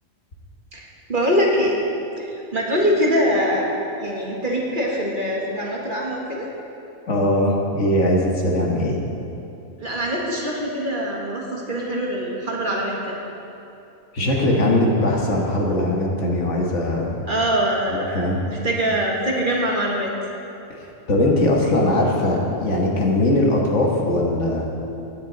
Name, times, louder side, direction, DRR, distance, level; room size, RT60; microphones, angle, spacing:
voice 1, 0.7-1.8 2.2-3.7 4.0-6.5 9.8-13.1 17.3-20.1, equal, 40° right, -3 dB, 1.7 m, -23 dB
voice 2, 7.1-9.0 14.1-17.2 17.9-18.4 20.7-20.8 21.1-24.7, left 1 dB, 60° left, -2 dB, 1.7 m, -20 dB
15.5 x 9.5 x 4.0 m, 2.8 s
omnidirectional pair, 1.4 m